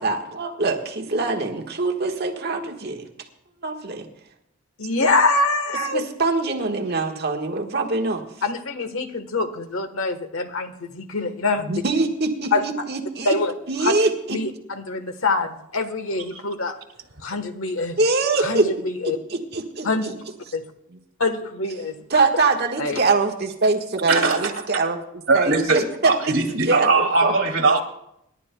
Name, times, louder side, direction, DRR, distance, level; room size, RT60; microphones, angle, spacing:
voice 1, 0.0-3.0 3.6-4.1 5.9-8.2 11.6-13.4 13.7-14.4 18.0-18.7 19.0-19.9 22.1-25.0 25.3-27.3, right 3 dB, 50° right, 2 dB, 1.4 m, -23 dB
voice 2, 4.8-6.1 8.4-11.8 12.5-12.6 13.2-13.5 13.8-13.9 14.3-16.7 17.2-18.0 18.4-19.2 19.8-20.2 20.5-20.6 21.2-22.0 22.8-23.0, left 3 dB, 80° left, 8 dB, 1.2 m, -24 dB
voice 3, 24.1-24.5 25.3-27.8, right 3 dB, 75° right, 2 dB, 2.2 m, -20 dB
27.5 x 11.5 x 2.2 m, 0.78 s
head